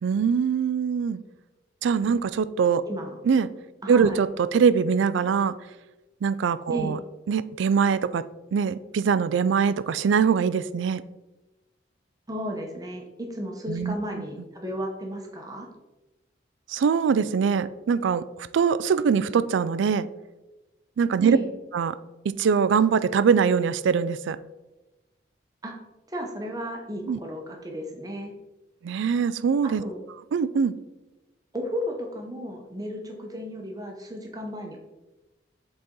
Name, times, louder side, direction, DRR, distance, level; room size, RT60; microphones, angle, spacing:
voice 1, 0.0-1.2 1.8-2.8 3.2-3.5 3.9-5.6 6.2-7.0 7.3-8.2 8.5-11.0 13.7-13.9 16.7-20.1 21.0-21.4 21.7-22.0 22.2-24.4 27.1-27.2 28.8-29.8 30.3-30.7, right 6 dB, 75° right, 16 dB, 0.3 m, -23 dB
voice 2, 2.8-3.2 3.8-4.2 6.7-7.0 12.3-15.7 21.2-21.5 25.6-25.7 26.1-28.3 29.8-30.0 31.5-34.8, equal, 20° right, 1 dB, 0.8 m, -34 dB
7.8 x 4.1 x 3.7 m, 1.1 s
head